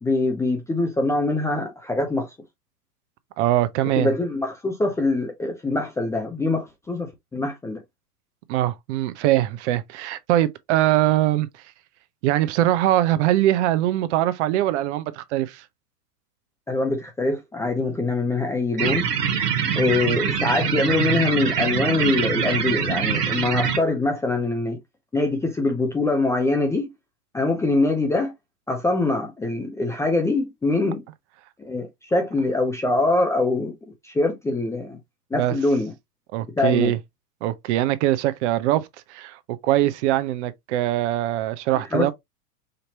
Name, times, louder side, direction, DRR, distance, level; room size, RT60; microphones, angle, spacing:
voice 1, 0.0-2.3 4.0-7.8 16.7-19.1 19.7-24.8 25.1-26.9 27.3-28.3 28.7-31.0 31.6-33.7 34.0-35.0 35.3-35.9 36.6-36.9 41.9-42.1, left 2 dB, 5° left, 0.4 m, -23 dB
voice 2, 3.4-4.1 8.5-11.5 12.2-15.6 35.3-35.5 36.3-37.0 37.4-42.1, right 14 dB, 50° right, 0.7 m, -22 dB
sound 1, 18.8-23.8, right 7 dB, 80° right, 1.6 m, -24 dB
5.1 x 2.8 x 2.8 m
hypercardioid pair, 110°, 46 cm